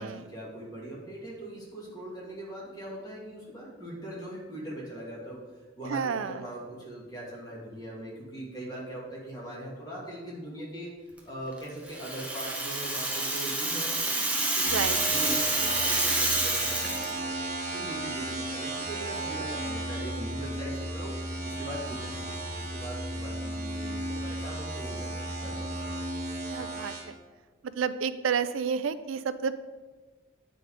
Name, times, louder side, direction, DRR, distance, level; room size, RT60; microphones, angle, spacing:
voice 1, 0.0-5.4 5.8-10.9 11.3-17.3 17.7-25.1 25.4-25.9, right 1 dB, 20° left, -6 dB, 2.2 m, -41 dB
voice 2, 5.9-6.4 14.7-15.0 26.5-27.1 27.6-29.5, right 6 dB, 90° right, 13 dB, 0.4 m, -30 dB
Rattle (instrument), 11.9-17.1, right 2 dB, 5° right, 0.9 m, -28 dB
sound 1, 14.6-27.0, right 1 dB, 40° right, 1.4 m, -34 dB
8.8 x 3.9 x 4.9 m, 1.3 s
head